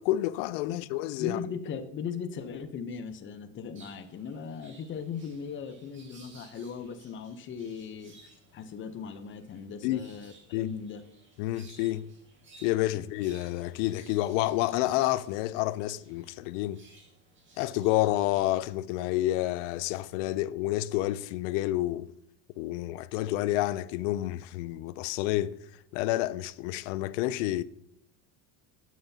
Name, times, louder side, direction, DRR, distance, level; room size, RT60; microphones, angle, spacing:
voice 1, 0.0-1.4 9.8-10.1 10.5-10.7 11.4-12.1 12.6-16.8 17.6-22.1 22.6-25.6 25.9-27.6, left 15 dB, 70° left, 0.5 m, -29 dB
voice 2, 1.2-8.2 8.5-11.0 12.9-13.0, left 6 dB, 30° left, 0.8 m, -38 dB
sound 1, 3.7-18.6, right 2 dB, 30° right, 1.9 m, -58 dB
9.2 x 9.0 x 2.8 m
supercardioid pair, 130°, 39 cm